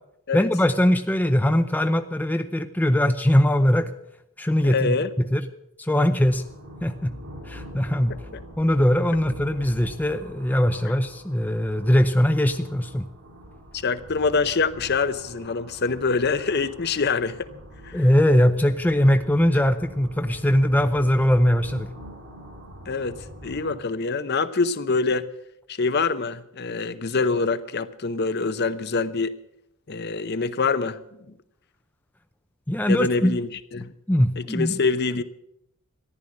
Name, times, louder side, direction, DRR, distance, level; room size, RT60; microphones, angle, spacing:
voice 1, 0.3-3.9 4.4-5.0 5.3-5.4 5.8-6.4 6.8-7.1 7.5-8.1 8.6-13.1 17.9-21.9 32.7-33.3 34.1-34.8, equal, 5° left, 0.5 m, -21 dB
voice 2, 4.6-5.1 13.7-17.5 17.8-18.1 22.9-25.3 25.7-29.4 29.9-31.0 32.9-33.9 34.4-35.2, left 4 dB, 45° left, 0.7 m, -25 dB
sound 1, 6.2-23.8, equal, 65° right, 4.7 m, -44 dB
14.5 x 11.0 x 7.7 m
head